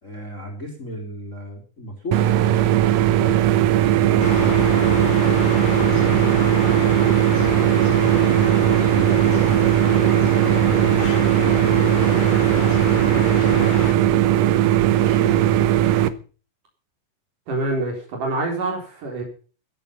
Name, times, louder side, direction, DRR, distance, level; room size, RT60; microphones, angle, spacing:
voice 1, 0.0-2.3 4.0-6.2, equal, 25° left, -1 dB, 3.3 m, -35 dB
sound 1, 2.1-16.1, right 12 dB, 70° right, 1.8 m, -18 dB
sound 2, 4.2-13.9, left 5 dB, 85° left, 3.5 m, -28 dB
voice 2, 17.5-19.2, right 2 dB, 85° right, 2 dB, 5.2 m, -26 dB
15.5 x 8.3 x 6.9 m, 0.37 s
omnidirectional pair, 3.6 m